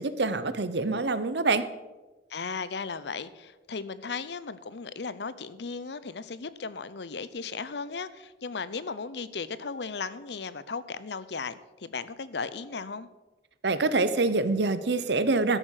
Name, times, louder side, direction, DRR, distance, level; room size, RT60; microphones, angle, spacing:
voice 1, 0.0-1.6 13.6-15.6, right 3 dB, 75° right, 13 dB, 0.9 m, -25 dB
voice 2, 2.3-13.1, left 5 dB, 75° left, 15 dB, 0.7 m, -36 dB
13.0 x 7.5 x 6.5 m, 1.1 s
head